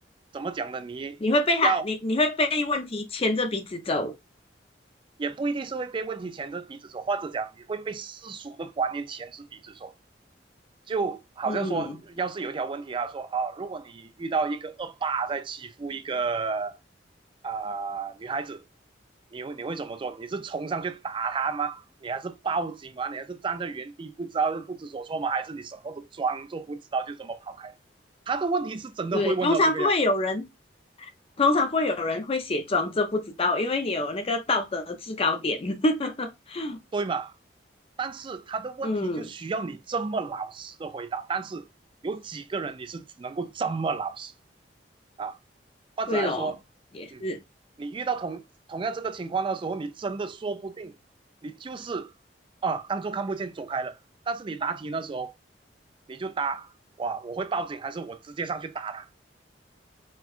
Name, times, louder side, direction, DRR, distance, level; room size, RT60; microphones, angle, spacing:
voice 1, 0.3-1.2 1.6-1.8 5.2-9.9 10.9-16.8 17.4-18.6 19.3-27.8 28.3-29.9 36.9-37.3 38.0-41.7 42.0-44.3 45.2-45.4 46.0-46.6 47.1-47.2 47.8-48.4 48.7-51.0 51.4-52.1 52.6-54.0 54.3-55.3 56.1-56.7 57.0-59.1, right 4 dB, 30° right, 0.3 m, -31 dB
voice 2, 1.2-4.1 11.5-11.8 29.1-30.5 31.0-31.1 31.4-36.8 38.8-39.3 46.1-46.5 46.9-47.4, left 2 dB, 35° left, 0.5 m, -26 dB
4.3 x 2.2 x 2.4 m
head